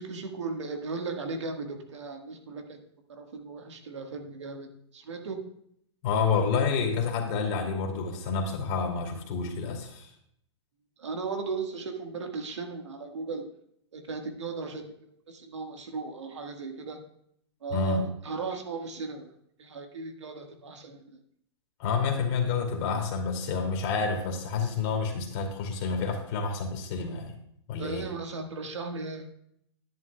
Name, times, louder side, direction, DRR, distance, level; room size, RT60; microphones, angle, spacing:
voice 1, 0.0-2.8 3.1-4.7 4.9-5.4 11.0-13.4 13.9-14.9 15.3-17.0 17.6-19.3 19.6-21.0 27.8-29.2, right 4 dB, 80° right, 4 dB, 1.6 m, -36 dB
voice 2, 6.0-10.1 17.7-18.1 21.8-27.3 27.7-28.1, left 5 dB, 45° left, 3 dB, 2.4 m, -29 dB
11.0 x 10.5 x 2.3 m, 0.71 s
hypercardioid pair, 120°, 15 cm